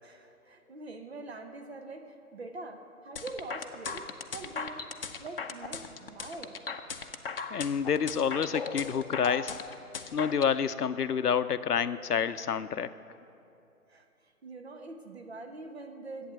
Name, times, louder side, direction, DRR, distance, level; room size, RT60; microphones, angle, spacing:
voice 1, 0.0-4.9 5.2-6.6 13.9-16.3, right 2 dB, 45° right, 6 dB, 0.9 m, -44 dB
sound 1, 3.2-10.5, left 5 dB, 40° left, 0.6 m, -37 dB
voice 2, 7.5-9.6 10.1-12.9, left 7 dB, 90° left, 14 dB, 0.6 m, -28 dB
11.5 x 8.5 x 7.2 m, 2.7 s
figure-of-eight pair, 145°, 45 cm